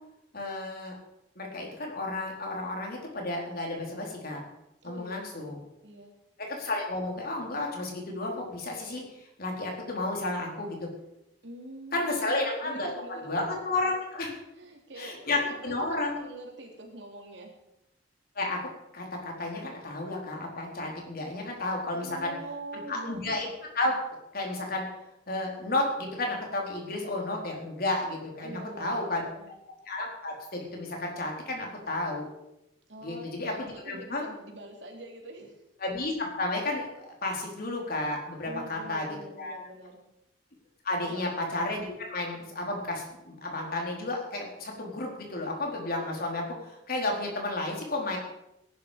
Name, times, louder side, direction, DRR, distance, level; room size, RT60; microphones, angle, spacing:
voice 1, 0.3-1.0 1.4-4.4 4.8-5.6 6.4-9.0 9.4-10.9 11.9-14.3 15.0-16.1 18.4-22.3 22.9-23.5 23.7-23.9 24.3-24.8 25.3-29.2 29.9-32.3 33.0-34.2 35.8-39.1 39.4-39.5 40.8-48.2, left 2 dB, 55° left, 0 dB, 4.2 m, -32 dB
voice 2, 4.8-5.6 5.8-6.1 11.4-13.4 14.5-17.5 21.9-23.2 28.4-29.5 32.9-35.5 38.4-40.0 41.1-41.3, right 1 dB, 75° right, 2 dB, 3.3 m, -45 dB
18.0 x 11.0 x 5.2 m, 0.86 s
head